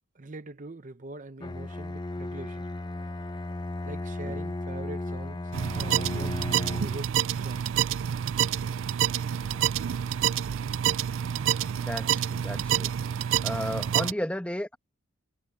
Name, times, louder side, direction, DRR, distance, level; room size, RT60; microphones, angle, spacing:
voice 1, 0.1-2.7 3.8-6.4 6.7-7.7, right 2 dB, 35° right, 0.7 m, -43 dB
Bowed string instrument, 1.4-7.1, left 2 dB, 20° left, 0.6 m, -35 dB
sound 1, 5.5-14.1, right 9 dB, 65° right, 0.4 m, -28 dB
voice 2, 11.7-12.9 13.4-14.8, left 1 dB, 5° left, 1.3 m, -34 dB
head